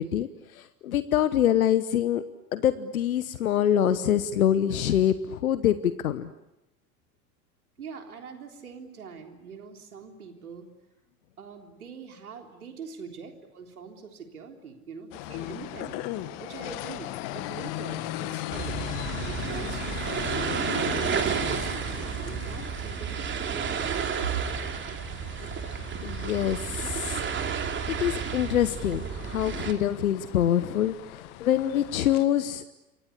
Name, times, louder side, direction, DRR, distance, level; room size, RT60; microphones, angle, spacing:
voice 1, 0.0-2.2 2.5-6.3 25.6-27.3 27.9-32.6, left 10 dB, 65° left, 14 dB, 1.1 m, -25 dB
voice 2, 7.8-10.7 11.4-16.0 16.4-18.8 19.3-21.7 22.2-24.4, right 6 dB, 70° right, 4 dB, 3.7 m, -42 dB
sound 1, 15.1-32.3, left 14 dB, 45° left, 1.8 m, -38 dB
sound 2, 18.5-29.7, right 7 dB, 25° right, 3.0 m, -31 dB
28.5 x 24.0 x 8.4 m, 0.97 s
figure-of-eight pair, 75°, 45 cm